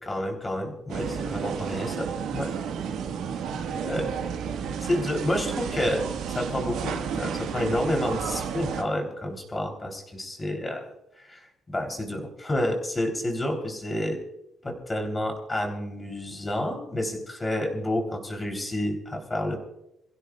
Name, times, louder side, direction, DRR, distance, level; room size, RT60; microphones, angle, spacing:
voice 1, 0.0-2.1 2.3-2.5 3.7-4.2 4.8-6.0 6.4-10.8 11.2-14.2 14.6-19.6, left 1 dB, 20° left, 3 dB, 3.5 m, -29 dB
sound 1, 0.9-8.8, right 7 dB, 90° right, 1.6 m, -32 dB
28.0 x 16.0 x 2.4 m, 0.83 s
cardioid pair, 130°, 0 cm